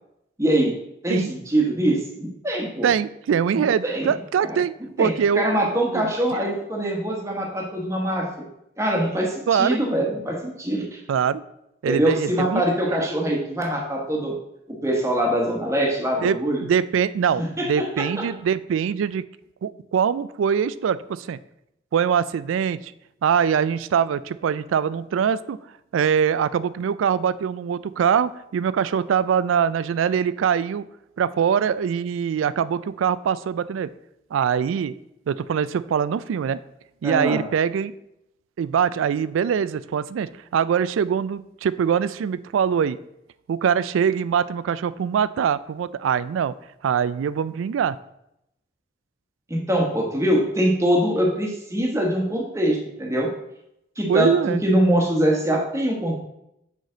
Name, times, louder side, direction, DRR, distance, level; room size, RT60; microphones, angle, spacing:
voice 1, 0.4-0.7 1.0-2.9 3.6-4.1 4.4-4.6 5.0-8.3 8.8-11.0 11.8-14.3 14.8-16.6 17.6-17.7 18.0-18.1 37.0-37.4 49.5-53.3 54.0-56.1, right 1 dB, 15° right, -1 dB, 1.2 m, -23 dB
voice 2, 2.8-5.7 5.9-6.4 9.5-9.8 11.1-11.4 11.8-12.6 16.2-19.2 19.6-21.4 21.9-22.9 23.2-25.6 25.9-30.8 31.2-33.9 34.3-34.9 35.3-36.6 37.0-37.9 38.6-43.0 43.5-46.5 46.8-48.0 54.1-54.6, right 7 dB, 85° right, 17 dB, 0.3 m, -23 dB
6.5 x 5.0 x 3.8 m, 0.81 s
head